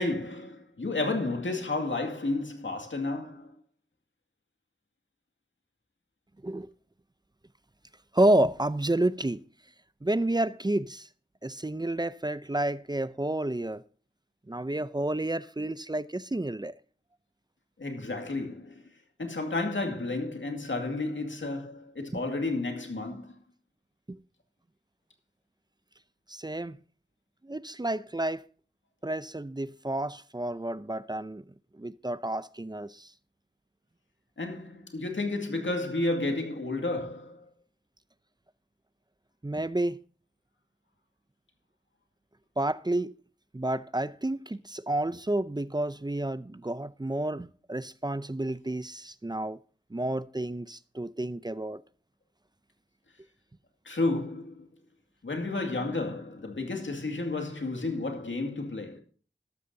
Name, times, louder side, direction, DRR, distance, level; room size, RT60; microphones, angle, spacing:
voice 1, 0.0-3.5 17.8-18.8 19.2-23.3 34.4-37.4 53.9-54.7 55.2-59.0, left 2 dB, 90° left, 2.2 m, -31 dB
voice 2, 8.1-9.4 10.0-11.1 11.4-13.8 14.5-16.7 24.1-24.2 26.3-26.8 27.4-28.4 29.0-31.4 31.8-33.1 39.4-40.0 42.6-43.1 43.5-49.6 49.9-51.8, right 1 dB, 20° right, 0.6 m, -30 dB
12.5 x 12.5 x 2.7 m
wide cardioid pair, 45°, 19 cm